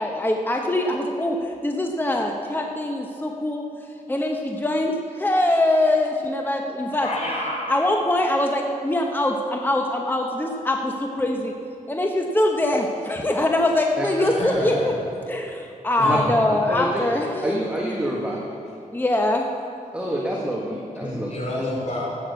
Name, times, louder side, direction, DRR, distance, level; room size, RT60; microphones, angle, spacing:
voice 1, 0.0-3.6 4.1-7.1 7.7-11.5 11.9-14.9 15.3-17.6 18.9-19.5, left 1 dB, 15° left, 2 dB, 1.1 m, -23 dB
voice 2, 7.0-7.7 14.2-14.9 16.0-16.3 21.0-22.2, left 1 dB, 55° left, -3 dB, 4.1 m, -28 dB
voice 3, 17.4-18.4 19.9-21.3, right 1 dB, 10° right, -4 dB, 1.9 m, -27 dB
14.0 x 8.9 x 7.0 m, 2.5 s
wide cardioid pair, 90°, 14 cm